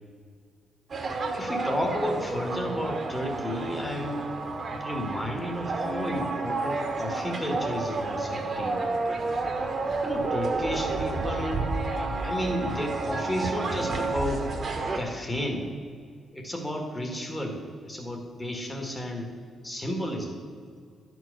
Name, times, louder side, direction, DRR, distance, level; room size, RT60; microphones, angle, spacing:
sound 1, 0.9-15.0, right 3 dB, 40° right, 1.2 m, -30 dB
voice 1, 1.3-4.2 4.8-8.7 10.0-11.7 12.2-14.5 14.9-15.7 16.3-19.3 19.6-20.4, equal, 15° left, 2 dB, 1.6 m, -32 dB
11.0 x 4.7 x 6.4 m, 2.2 s
cardioid pair, 110°, 0 cm